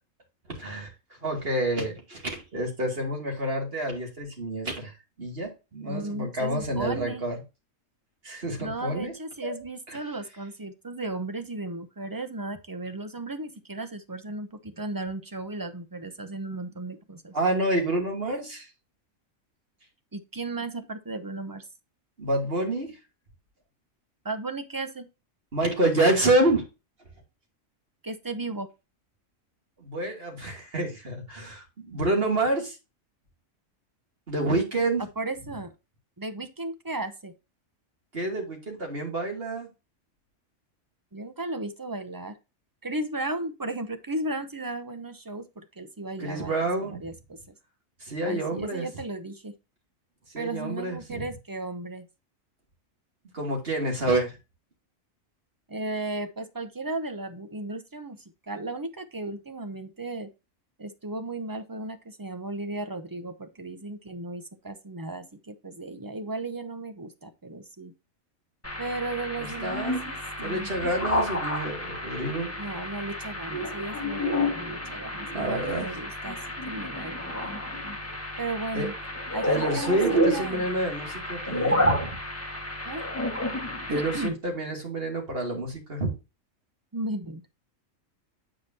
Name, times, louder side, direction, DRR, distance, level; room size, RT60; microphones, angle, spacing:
voice 1, 0.5-7.4 8.2-9.1 9.4-9.5 9.9-10.0 17.3-18.7 22.2-23.0 25.5-26.6 29.8-32.8 34.3-35.0 38.1-39.7 46.2-47.0 48.0-48.9 50.3-51.2 53.3-54.4 69.4-70.0 70.4-72.5 75.3-75.9 78.7-78.9 79.5-82.2 83.9-86.1, right 1 dB, 45° right, 1 dB, 2.5 m, -28 dB
voice 2, 5.9-7.2 8.6-17.4 20.1-21.6 24.2-25.1 28.0-28.7 35.2-35.7 36.2-37.3 41.1-42.4 42.8-47.4 48.3-49.6 50.4-52.1 55.7-60.3 60.8-67.9 68.8-70.2 70.4-70.7 72.6-76.4 76.7-77.5 78.4-78.9 79.3-80.7 82.8-83.0 83.9-84.4 86.9-87.4, right 2 dB, 25° right, 9 dB, 0.5 m, -35 dB
sound 1, 68.6-84.3, equal, 10° left, 1.3 m, -30 dB
9.1 x 4.9 x 2.7 m, 0.27 s
omnidirectional pair, 1.4 m